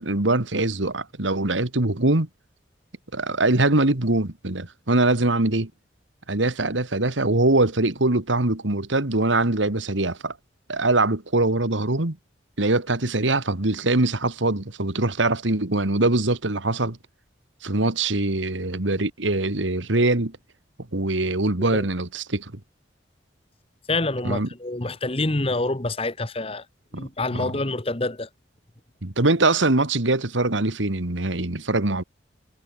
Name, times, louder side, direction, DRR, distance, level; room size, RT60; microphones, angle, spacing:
voice 1, 0.0-2.3 3.1-5.7 6.3-10.3 10.7-12.2 12.6-17.0 17.6-20.4 20.9-22.5 24.2-24.5 26.9-27.1 27.3-27.5 29.0-32.0, right 2 dB, 85° right, 2.2 m, -23 dB
voice 2, 23.9-26.6 26.9-28.3, left 2 dB, 30° left, 1.4 m, -27 dB
head